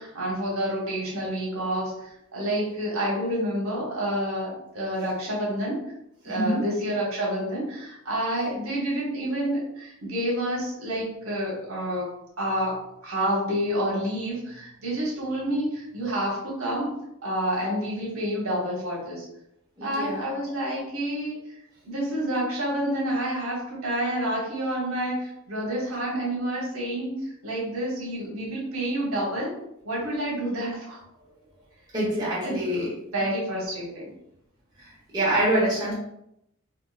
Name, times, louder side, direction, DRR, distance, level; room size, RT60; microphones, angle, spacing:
voice 1, 0.0-5.9 6.2-12.1 12.4-17.0 17.2-19.3 19.8-21.4 21.8-27.2 27.4-29.5 29.8-31.0 32.4-32.9 33.1-34.1, right 1 dB, 70° right, -4 dB, 1.0 m, -29 dB
voice 2, 6.2-6.6 19.8-20.3 31.9-32.9 34.8-35.9, right 1 dB, 20° right, -7 dB, 1.1 m, -26 dB
3.5 x 2.4 x 2.4 m, 0.81 s
head